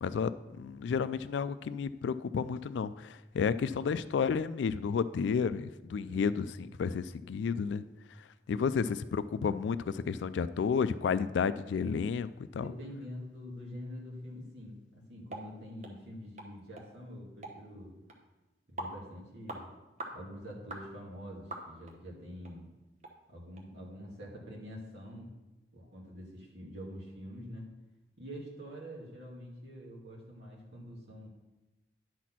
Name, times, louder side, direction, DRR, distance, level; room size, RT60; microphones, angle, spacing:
voice 1, 0.0-0.3 0.6-6.4 6.8-7.8 8.5-12.7, left 6 dB, 80° left, 14 dB, 0.3 m, -31 dB
voice 2, 6.1-6.4 11.7-11.9 12.6-17.9 18.7-19.7 20.1-22.7 23.3-25.3 25.7-27.7 28.2-31.3, equal, 70° right, -3 dB, 2.2 m, -45 dB
sound 1, 15.3-15.5 15.8-15.9 16.4-16.5 16.8-16.9 17.4-17.6 18.1-18.2 18.8-19.0 19.5-19.6 20.0-20.2 20.7-20.9 21.5-21.9 22.4-22.5 23.0-23.1 23.6-23.7, right 2 dB, 40° right, 1.0 m, -42 dB
10.0 x 4.2 x 5.9 m, 1.0 s
head